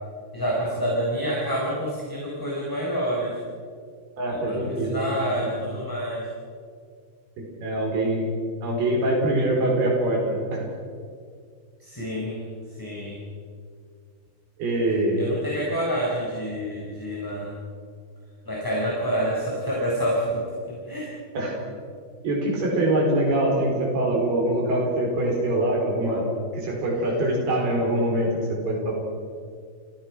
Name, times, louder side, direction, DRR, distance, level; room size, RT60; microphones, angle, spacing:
voice 1, 0.3-3.4 4.3-6.3 11.8-12.4 12.8-13.2 15.2-17.5 18.4-21.1, equal, 5° left, -5 dB, 4.4 m, -28 dB
voice 2, 4.2-5.0 5.4-5.5 7.4-8.3 8.6-10.6 14.6-15.2 21.3-21.6 22.2-26.2 26.5-28.9, right 1 dB, 80° right, -1 dB, 6.4 m, -24 dB
30.0 x 16.0 x 6.2 m, 2.1 s
omnidirectional pair, 4.5 m